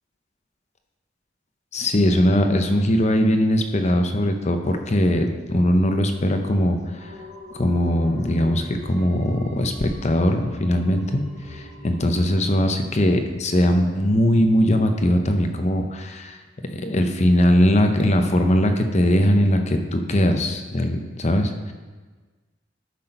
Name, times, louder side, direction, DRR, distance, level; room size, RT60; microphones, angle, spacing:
voice 1, 1.7-7.1 7.5-16.4 16.7-21.5, equal, 40° left, 5 dB, 0.7 m, -20 dB
sound 1, 7.0-16.3 16.7-16.8, equal, 85° right, 1.9 m, -42 dB
8.4 x 5.9 x 5.3 m, 1.3 s
head